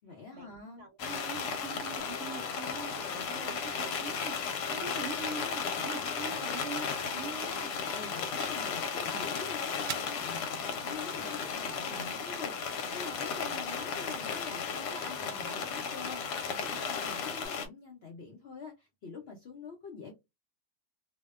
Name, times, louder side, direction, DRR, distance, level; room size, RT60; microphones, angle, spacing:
voice 1, 0.0-0.9 7.9-20.1, left 4 dB, 65° left, 0.6 m, -45 dB
voice 2, 0.8-7.7, right 4 dB, 70° right, 0.7 m, -43 dB
sound 1, 1.0-17.7, left 6 dB, 85° left, 1.2 m, -35 dB
sound 2, 2.0-17.5, equal, 35° right, 0.9 m, -52 dB
sound 3, 5.1-13.0, right 9 dB, 90° right, 1.2 m, -50 dB
2.7 x 2.1 x 2.2 m
omnidirectional pair, 1.7 m